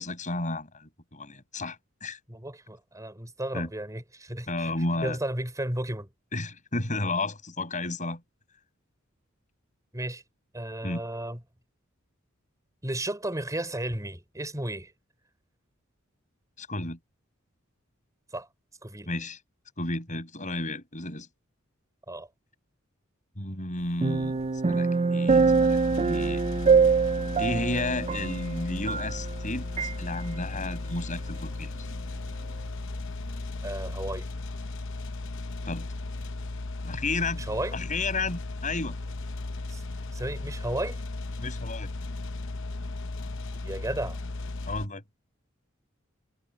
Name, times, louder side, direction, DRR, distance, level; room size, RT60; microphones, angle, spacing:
voice 1, 0.0-2.2 3.5-3.7 4.5-5.2 6.3-8.2 10.8-11.0 16.6-17.0 19.1-19.4 19.8-21.3 23.4-24.4 24.7-25.8 26.0-26.4 27.4-31.9 35.6-35.9 36.8-37.4 37.7-39.0 41.4-41.9 44.7-45.0, left 2 dB, 40° left, 7.5 m, -32 dB
voice 2, 2.3-4.7 5.0-6.1 9.9-10.2 10.5-11.4 12.8-14.9 18.3-18.5 18.8-19.1 22.1-22.3 33.6-34.3 37.4-37.8 39.7-39.8 40.1-41.0 43.6-44.2, right 1 dB, 15° right, 4.7 m, -34 dB
sound 1, 24.0-29.4 29.8-29.9, right 5 dB, 30° right, 0.5 m, -24 dB
sound 2, 25.3-44.9, left 2 dB, 65° left, 0.8 m, -36 dB
head